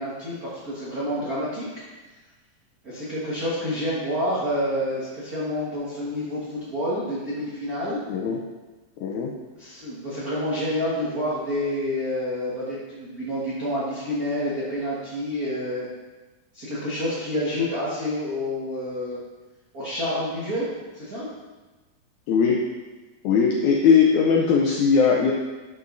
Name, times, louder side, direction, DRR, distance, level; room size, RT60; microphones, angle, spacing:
voice 1, 0.0-1.6 2.8-8.0 9.6-15.9 16.5-19.2 19.7-20.7 20.9-21.3, left 1 dB, 90° right, -9 dB, 0.8 m, -28 dB
voice 2, 8.1-8.4 9.0-9.3 22.3-22.6 23.2-25.3, left 6 dB, 85° left, -1 dB, 1.7 m, -19 dB
10.5 x 5.5 x 2.6 m, 1.2 s
omnidirectional pair, 4.1 m